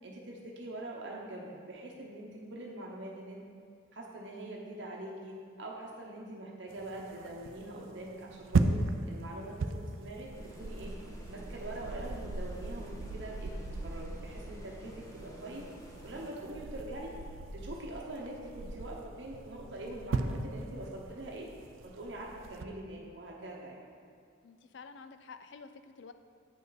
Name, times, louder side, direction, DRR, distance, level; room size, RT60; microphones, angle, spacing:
voice 1, 0.0-3.4 3.9-11.0 11.3-13.5 13.8-15.6 16.0-17.1 17.5-21.5 21.8-23.8, right 1 dB, 60° right, -2 dB, 0.8 m, -43 dB
voice 2, 2.6-2.9 24.4-26.1, left 5 dB, 65° left, 9 dB, 0.4 m, -50 dB
sound 1, 6.7-22.6, right 3 dB, 80° right, 0.4 m, -38 dB
sound 2, 10.3-16.9, equal, 15° left, 0.7 m, -52 dB
8.3 x 5.3 x 4.1 m, 2.3 s
head